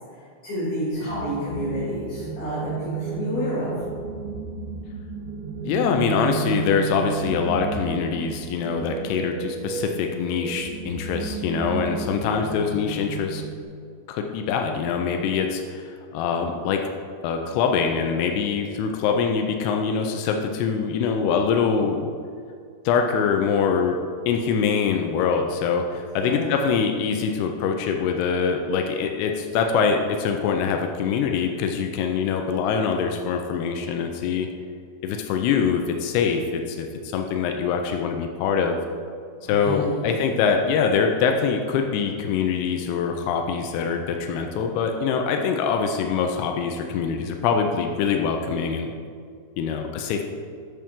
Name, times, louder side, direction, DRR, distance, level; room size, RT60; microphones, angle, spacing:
voice 1, 0.4-3.8 21.6-21.9 26.2-26.5 39.4-40.0, equal, 60° left, -11 dB, 3.8 m, -29 dB
sound 1, 0.9-13.6, right 5 dB, 80° right, 3.1 m, -33 dB
voice 2, 5.6-13.4 14.1-16.9 17.2-22.0 22.9-24.0 24.3-34.5 35.0-38.8 39.4-48.9 49.6-50.2, left 6 dB, 90° left, 4 dB, 2.3 m, -24 dB
10.5 x 6.8 x 3.6 m, 2.1 s
omnidirectional pair, 5.4 m